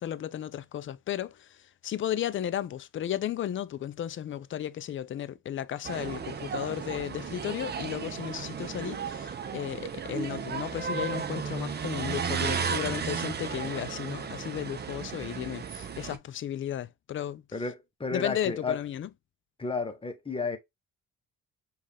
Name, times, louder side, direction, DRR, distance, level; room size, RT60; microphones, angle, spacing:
voice 1, 0.0-17.4 18.1-19.1, left 11 dB, 40° left, 0.4 m, -34 dB
sound 1, 5.8-16.2, right 6 dB, 35° right, 0.6 m, -34 dB
voice 2, 17.5-18.8 19.6-20.6, left 4 dB, 20° left, 1.0 m, -32 dB
5.3 x 2.5 x 3.3 m
cardioid pair, 90°, 30 cm